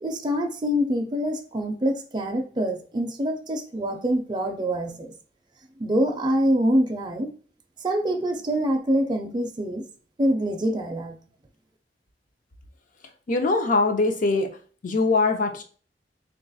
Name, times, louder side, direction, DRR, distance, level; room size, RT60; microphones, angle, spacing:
voice 1, 0.0-5.1 5.8-7.3 7.8-9.9 10.2-11.2, equal, 25° right, 2 dB, 0.5 m, -25 dB
voice 2, 13.3-14.5 14.8-15.6, left 3 dB, 50° left, 6 dB, 0.6 m, -22 dB
3.8 x 2.3 x 3.9 m, 0.42 s
head